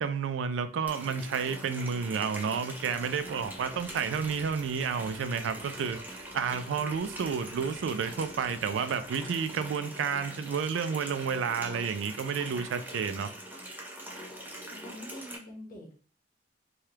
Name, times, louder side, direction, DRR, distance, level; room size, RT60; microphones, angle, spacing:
voice 1, 0.0-13.3, right 6 dB, 85° right, 0.3 m, -31 dB
Water tap faucet, 0.9-15.4, right 1 dB, 10° right, 0.5 m, -43 dB
sound 1, 2.8-9.5, equal, 50° right, 0.7 m, -57 dB
voice 2, 14.5-16.0, left 1 dB, 50° left, 0.9 m, -46 dB
3.2 x 2.3 x 2.8 m
head